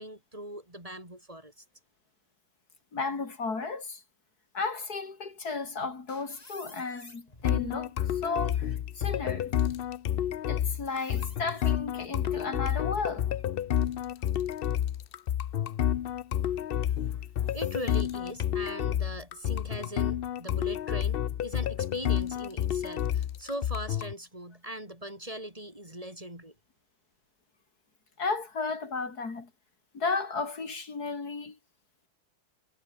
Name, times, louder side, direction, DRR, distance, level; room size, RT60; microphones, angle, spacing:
voice 1, 0.0-1.6 17.5-26.5, right 1 dB, 20° right, 5.1 m, -40 dB
voice 2, 2.9-4.0 4.5-9.5 10.5-13.3 28.2-29.5 29.9-31.6, left 4 dB, 80° left, 3.6 m, -34 dB
sound 1, 5.6-10.6 10.9-12.6 13.1-15.0 15.5-15.6 16.7-19.7, left 2 dB, 25° left, 3.8 m, -55 dB
sound 2, 7.4-24.1, left 10 dB, 65° left, 0.5 m, -30 dB
omnidirectional pair, 1.6 m